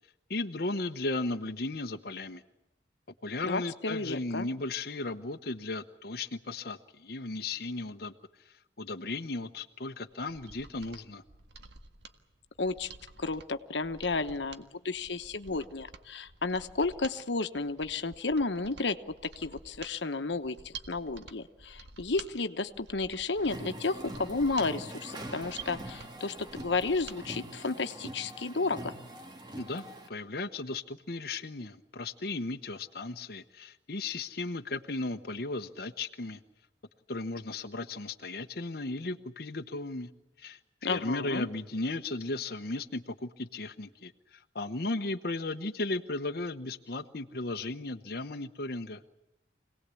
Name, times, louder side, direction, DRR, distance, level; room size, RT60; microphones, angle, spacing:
voice 1, 0.3-2.4 3.2-8.1 8.4-11.2 29.6-36.4 37.1-40.1 40.4-49.0, left 2 dB, 60° left, 6 dB, 1.0 m, -36 dB
voice 2, 3.4-4.5 12.6-12.9 13.2-19.0 19.4-28.9 40.8-41.5, left 3 dB, 90° left, 9 dB, 1.1 m, -32 dB
Mechanisms, 10.1-27.2 27.5-27.6, right 4 dB, 75° right, 1.7 m, -50 dB
sound 1, 23.4-30.1, right 1 dB, 25° right, 1.9 m, -43 dB
26.0 x 18.5 x 8.4 m, 0.98 s
head